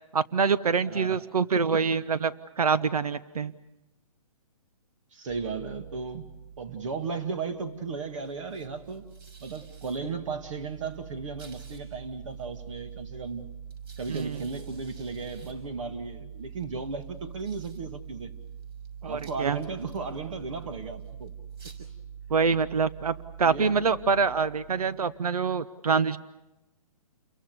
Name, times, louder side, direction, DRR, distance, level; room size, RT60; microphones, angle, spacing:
voice 1, 0.1-3.5 14.1-14.4 19.0-19.6 22.3-26.2, right 5 dB, 90° right, 15 dB, 1.0 m, -25 dB
voice 2, 0.9-1.2 1.5-1.8 5.1-6.3 6.6-9.1 9.4-13.5 14.0-18.3 19.0-21.3 23.4-23.8, right 4 dB, 60° right, 8 dB, 2.3 m, -35 dB
sound 1, 5.3-25.2, right 7 dB, 40° right, 6.3 m, -45 dB
30.0 x 23.0 x 6.9 m, 0.95 s
hypercardioid pair, 155°, 19 cm